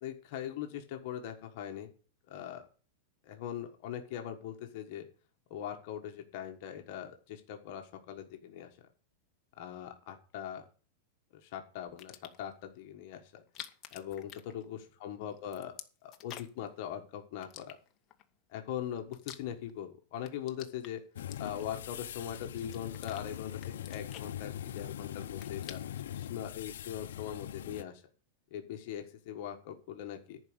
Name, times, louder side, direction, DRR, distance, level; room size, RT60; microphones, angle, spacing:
voice 1, 0.0-1.9 2.3-2.6 3.2-5.1 5.5-8.7 9.6-10.6 11.3-13.4 13.9-17.8 18.5-21.0 21.4-25.8 26.1-28.0 28.5-30.4, left 10 dB, 40° left, 3 dB, 1.4 m, -41 dB
sound 1, 11.9-12.5 13.4-15.0 15.3-16.7 17.4-18.2 18.8-19.9 20.2-21.8 22.3-23.2 23.6-24.9 25.2-26.1, left 10 dB, 20° left, 0.8 m, -50 dB
sound 2, 21.2-27.8, left 11 dB, 90° left, 0.6 m, -42 dB
11.0 x 4.9 x 7.9 m, 0.39 s
supercardioid pair, 175°, 0 cm